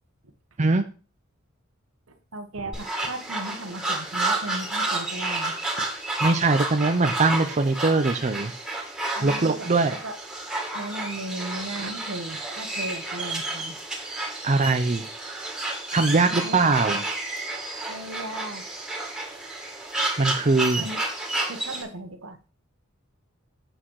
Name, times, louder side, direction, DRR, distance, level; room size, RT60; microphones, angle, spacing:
voice 1, 2.3-5.6 9.1-10.2 10.7-13.8 16.2-16.7 17.9-18.6 20.8-21.0 21.5-22.4, right 1 dB, 75° right, 7 dB, 1.3 m, -36 dB
sound 1, 2.7-21.8, right 2 dB, 5° right, 2.4 m, -31 dB
voice 2, 6.2-8.5 9.2-10.0 14.4-15.0 15.9-17.0 20.2-20.9, right 3 dB, 35° right, 7 dB, 0.6 m, -21 dB
8.0 x 6.3 x 4.8 m, 0.35 s
head